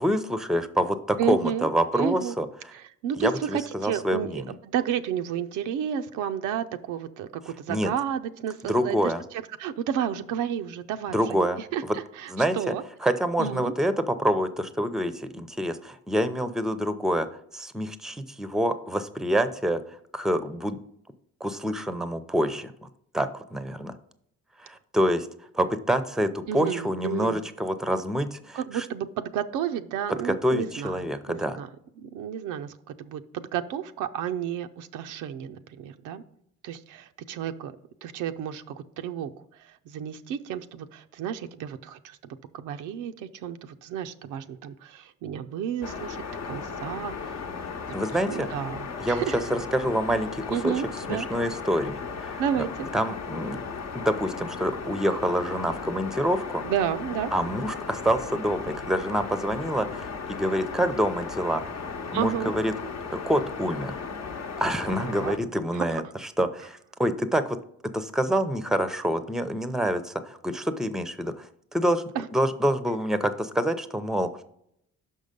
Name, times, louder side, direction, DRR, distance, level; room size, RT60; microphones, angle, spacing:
voice 1, 0.0-2.7 3.2-4.5 7.7-7.9 8.7-9.2 11.1-12.0 12.3-12.7 13.0-17.3 17.5-20.8 21.4-22.9 23.1-23.9 24.6-25.3 25.5-28.9 30.2-31.6 47.9-48.5 49.0-50.7 51.1-52.4 52.9-53.6 53.9-56.7 57.3-61.7 62.1-62.7 63.3-64.0 64.6-67.6 67.9-72.0 72.3-74.3, equal, ahead, 11 dB, 0.5 m, -27 dB
voice 2, 1.2-1.7 1.9-2.4 2.7-9.0 9.6-11.5 11.7-12.8 13.4-13.7 26.5-27.4 28.5-30.9 31.3-31.7 32.0-36.2 36.6-37.7 38.0-39.3 39.6-42.2 42.5-47.4 48.2-49.4 50.5-51.3 52.4-52.9 56.6-57.3 62.1-62.5 64.9-65.3 65.7-66.0 72.2-72.3, right 9 dB, 90° right, 9 dB, 0.5 m, -31 dB
sound 1, 45.8-65.4, left 5 dB, 60° left, 0.9 m, -36 dB
5.8 x 5.4 x 5.2 m, 0.73 s
cardioid pair, 90°, 30 cm